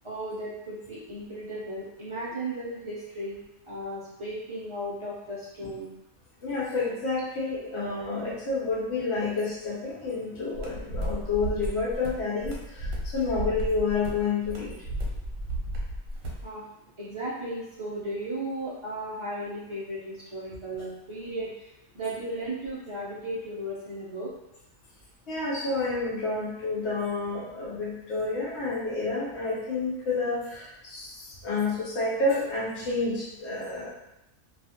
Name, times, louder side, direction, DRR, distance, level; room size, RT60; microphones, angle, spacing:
voice 1, 0.0-3.4 3.6-5.9 16.4-16.6 17.0-24.3, right 1 dB, 35° right, -9 dB, 0.5 m, -35 dB
voice 2, 6.4-14.8 25.3-33.9, left 3 dB, 65° left, -5 dB, 0.8 m, -29 dB
sound 1, 10.5-16.5, equal, 80° right, 1.0 m, -34 dB
2.4 x 2.3 x 2.8 m, 0.91 s
omnidirectional pair, 1.3 m